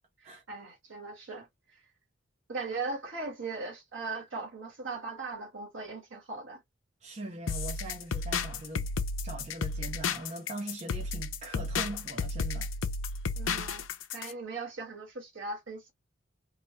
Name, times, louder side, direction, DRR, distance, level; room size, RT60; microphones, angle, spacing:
voice 1, 0.2-1.8 2.5-6.6 13.3-15.9, right 3 dB, 70° right, 1.4 m, -39 dB
voice 2, 7.0-8.9 9.2-12.7, right 1 dB, 35° right, 0.6 m, -41 dB
sound 1, 7.5-14.3, left 4 dB, 80° left, 0.5 m, -33 dB
3.1 x 2.2 x 3.0 m
head